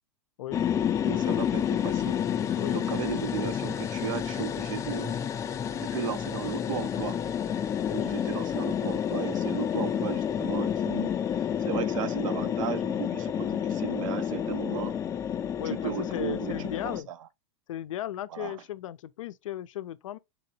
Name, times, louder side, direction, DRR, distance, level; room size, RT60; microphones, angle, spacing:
sound 1, 0.5-17.0, left 9 dB, 20° left, 0.3 m, -30 dB
voice 1, 1.0-2.2 2.7-5.2 5.7-7.2 7.9-11.1 11.4-15.0 15.6-17.2 18.3-18.6, right 11 dB, 85° right, 0.5 m, -36 dB
voice 2, 2.5-2.9 7.8-8.2 15.6-17.1 17.7-20.2, left 12 dB, 90° left, 0.4 m, -36 dB
4.1 x 2.9 x 2.7 m
supercardioid pair, 135°, 16 cm